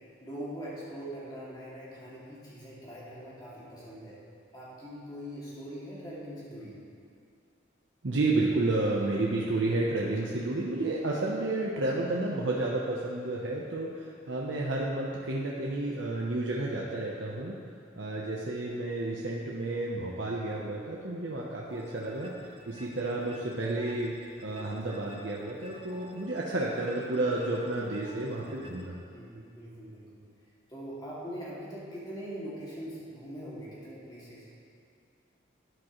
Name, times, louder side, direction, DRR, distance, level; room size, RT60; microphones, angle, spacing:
voice 1, 0.2-4.2 4.5-6.8 29.1-30.2 30.7-34.5, equal, 20° left, -8 dB, 2.3 m, -42 dB
voice 2, 8.0-17.5 18.0-22.3 22.7-24.1 24.4-29.0, right 2 dB, 70° right, -3 dB, 0.8 m, -31 dB
sound 1, 21.7-28.9, right 1 dB, 30° right, 0.7 m, -52 dB
12.5 x 8.7 x 3.1 m, 2.3 s
head